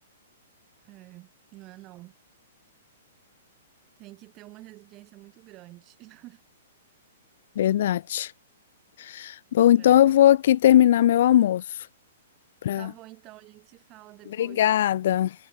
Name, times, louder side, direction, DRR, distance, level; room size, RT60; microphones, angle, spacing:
voice 1, 0.8-2.1 4.0-6.4 9.8-10.1 12.7-14.7, right 18 dB, 25° right, 3.3 m, -48 dB
voice 2, 7.6-8.3 9.0-11.6 12.6-12.9 14.4-15.3, left 11 dB, 60° left, 0.5 m, -19 dB
hypercardioid pair, 160°, 0 cm